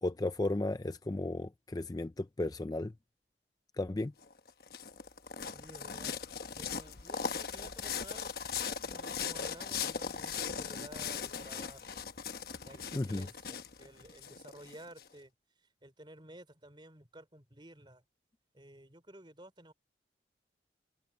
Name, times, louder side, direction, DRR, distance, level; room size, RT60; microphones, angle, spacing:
voice 1, 0.0-2.9 3.8-4.1 12.9-13.3, left 2 dB, 20° left, 0.4 m, -34 dB
sound 1, 4.2-15.0, left 6 dB, 55° left, 1.1 m, -39 dB
voice 2, 5.5-6.2 6.5-12.0 12.6-18.0 18.5-19.7, right 1 dB, 25° right, 3.9 m, -54 dB
head